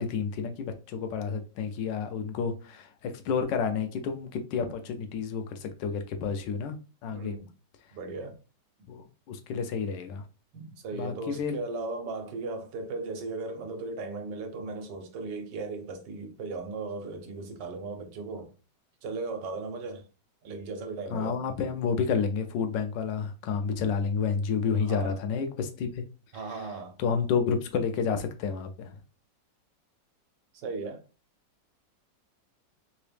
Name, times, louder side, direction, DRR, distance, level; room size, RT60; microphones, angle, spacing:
voice 1, 0.0-7.3 8.9-10.2 10.9-11.6 21.1-26.0 26.3-26.6 27.0-29.0, left 6 dB, 80° left, 1.3 m, -30 dB
voice 2, 7.1-7.5 7.9-8.4 10.5-18.5 19.0-20.1 20.4-21.4 24.8-25.2 26.3-27.0 30.5-31.0, right 3 dB, 75° right, 1.4 m, -37 dB
3.6 x 2.9 x 3.3 m
omnidirectional pair, 1.9 m